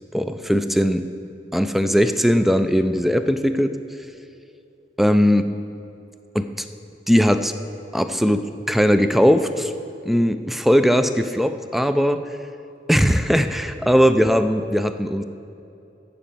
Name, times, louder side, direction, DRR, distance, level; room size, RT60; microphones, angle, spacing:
voice 1, 0.1-1.1 1.5-3.8 5.0-5.5 6.3-6.7 7.1-7.5 7.9-9.7 10.0-12.2 12.9-15.2, equal, ahead, 10 dB, 0.4 m, -19 dB
13.5 x 5.1 x 7.5 m, 2.7 s
head